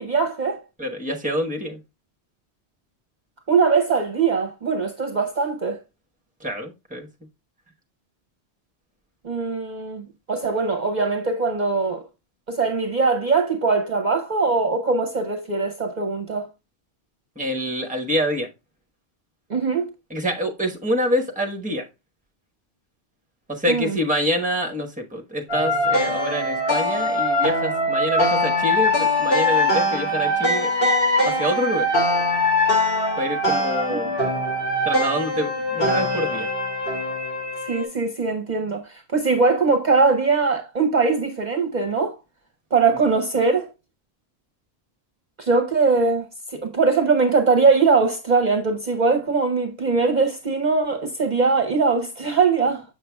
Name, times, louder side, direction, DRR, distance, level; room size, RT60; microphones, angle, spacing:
voice 1, 0.0-0.6 3.5-5.8 9.2-12.0 12.5-16.5 19.5-19.9 23.7-24.0 33.9-34.2 37.7-42.1 42.7-43.7 45.4-46.3 46.5-52.8, right 4 dB, 45° right, 0.8 m, -21 dB
voice 2, 0.8-1.8 6.4-7.1 17.4-18.5 20.1-21.9 23.5-30.7 31.2-31.9 33.2-34.1 34.8-36.5 42.9-43.0, equal, 10° right, 1.0 m, -26 dB
sound 1, 25.5-37.8, left 1 dB, 60° left, 2.8 m, -22 dB
7.0 x 6.6 x 2.2 m
omnidirectional pair, 1.1 m